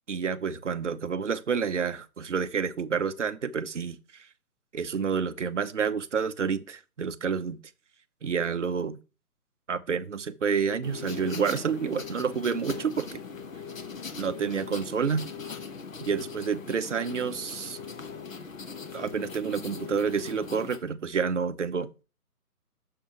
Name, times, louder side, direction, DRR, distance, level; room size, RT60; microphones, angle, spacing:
voice 1, 0.1-4.3 4.7-7.6 8.2-9.0 9.7-13.2 14.2-15.3 16.0-17.8 18.9-21.9, right 6 dB, 50° right, 0.6 m, -29 dB
sound 1, 10.8-20.8, left 5 dB, 55° left, 1.1 m, -40 dB
8.9 x 6.6 x 2.9 m
figure-of-eight pair, 155°, 47 cm